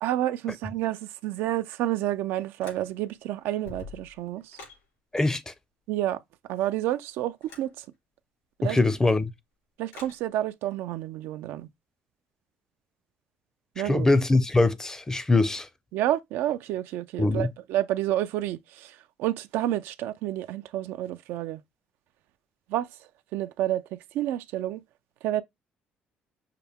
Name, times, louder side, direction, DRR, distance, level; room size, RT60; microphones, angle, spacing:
voice 1, 0.0-4.6 5.9-6.2 6.5-7.9 8.6-8.8 9.8-11.7 13.8-14.1 15.9-21.6 22.7-22.9 23.3-24.8 25.2-25.4, right 13 dB, 80° right, 0.3 m, -29 dB
sound 1, 2.6-3.2 3.5-4.8 7.4-7.7 9.9-10.2, left 3 dB, 80° left, 3.4 m, -46 dB
voice 2, 5.1-5.5 8.7-9.3 13.8-15.7 17.2-17.5, left 2 dB, 15° left, 0.5 m, -22 dB
5.6 x 2.1 x 3.4 m
cardioid pair, 90°, 4 cm